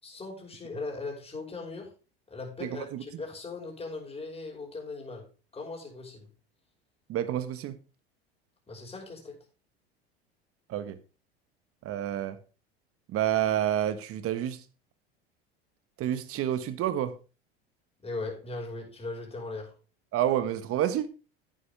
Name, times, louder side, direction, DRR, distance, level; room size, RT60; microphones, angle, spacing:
voice 1, 0.0-1.9 2.3-6.3 8.7-9.4 18.0-19.7, left 3 dB, 20° left, 5.4 m, -39 dB
voice 2, 2.6-3.0 7.1-7.7 10.7-11.0 11.8-12.4 13.1-14.6 16.0-17.1 20.1-21.1, right 11 dB, 45° right, 1.5 m, -29 dB
11.0 x 9.9 x 3.5 m
hypercardioid pair, 80°, 31 cm